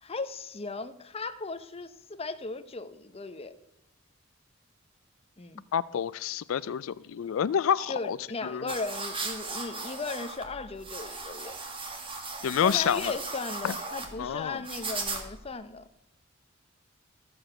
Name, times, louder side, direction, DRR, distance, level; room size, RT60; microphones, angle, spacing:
voice 1, 0.0-3.5 5.4-5.6 7.9-11.6 12.6-15.9, left 3 dB, 30° left, 0.7 m, -37 dB
voice 2, 5.7-8.2 8.4-8.7 12.4-13.1 13.6-13.7 14.2-14.6, left 8 dB, 90° left, 0.4 m, -28 dB
sound 1, 8.7-15.5, right 3 dB, 25° right, 1.8 m, -37 dB
14.0 x 7.0 x 7.6 m
head